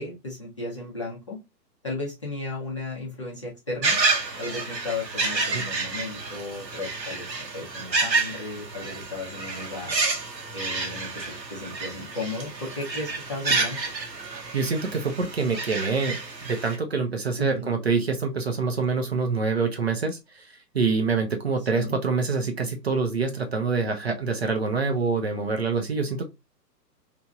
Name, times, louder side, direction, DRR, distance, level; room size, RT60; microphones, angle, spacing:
voice 1, 0.0-1.4 1.8-4.0 4.4-10.0 10.5-13.8 17.4-17.7 21.7-22.0, left 2 dB, 20° left, -4 dB, 0.5 m, -35 dB
sound 1, 3.8-16.8, right 3 dB, 90° right, 0.9 m, -29 dB
voice 2, 14.5-20.5 20.7-26.2, right 4 dB, 40° right, 4 dB, 0.5 m, -26 dB
3.0 x 2.5 x 2.3 m, 0.23 s
figure-of-eight pair, 125°, 49 cm